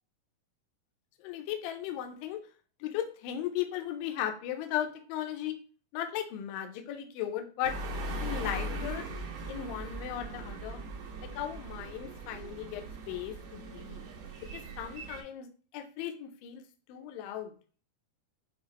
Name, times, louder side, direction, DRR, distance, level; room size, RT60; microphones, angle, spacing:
voice 1, 1.2-2.4 2.8-5.6 5.9-7.7 8.2-9.0 9.5-10.8 11.2-14.0 14.5-15.5 15.7-16.6 16.9-17.5, left 10 dB, 80° left, 5 dB, 2.1 m, -36 dB
sound 1, 7.6-15.2, right 1 dB, 60° right, 1.9 m, -39 dB
6.7 x 2.4 x 3.0 m, 0.39 s
omnidirectional pair, 4.4 m